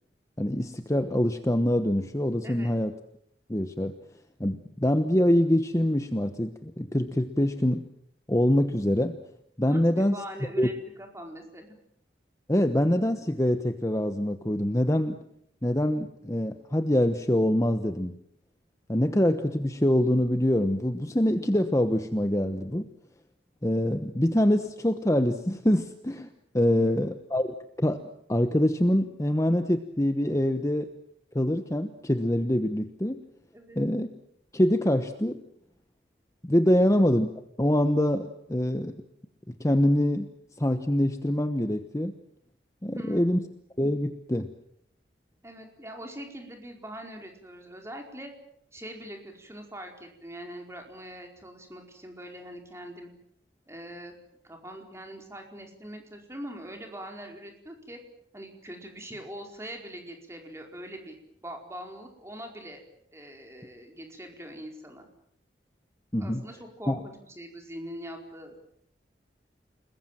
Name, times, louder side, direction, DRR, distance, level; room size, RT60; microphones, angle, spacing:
voice 1, 0.4-2.9 3.5-3.9 4.4-7.9 8.3-9.2 9.6-10.2 10.6-10.7 12.5-15.2 15.6-18.2 18.9-22.9 23.6-26.3 26.5-28.0 28.3-30.9 31.3-33.2 33.8-34.1 34.5-35.4 36.4-37.3 37.6-38.9 39.5-40.3 40.6-42.2 42.8-43.4 43.8-44.5 66.1-66.4 66.9-67.0, left 1 dB, 15° left, 8 dB, 1.1 m, -25 dB
voice 2, 9.7-11.8 26.7-27.0 33.5-33.8 36.7-36.8 42.9-43.4 45.4-48.3 48.7-53.1 53.7-54.1 54.4-58.0 58.3-61.2 61.4-62.8 63.1-65.1 66.2-68.6, equal, 15° right, 3 dB, 4.7 m, -42 dB
29.5 x 21.0 x 7.5 m, 0.70 s
head